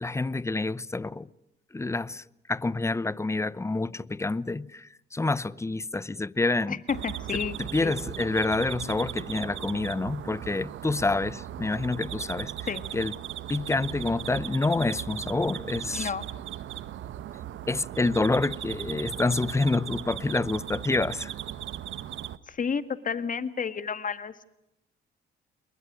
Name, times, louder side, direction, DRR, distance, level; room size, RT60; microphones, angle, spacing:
voice 1, 0.0-1.3 1.7-2.2 2.5-6.8 7.6-12.5 12.9-13.1 13.5-16.1 17.7-21.3, left 3 dB, 15° left, 0.8 m, -27 dB
voice 2, 6.7-7.5 7.8-7.9 12.7-12.8 15.9-16.2 22.5-24.5, left 6 dB, 40° left, 2.0 m, -31 dB
sound 1, 6.9-22.4, right 11 dB, 75° right, 1.2 m, -37 dB
29.0 x 22.5 x 6.3 m
cardioid pair, 90°, 20 cm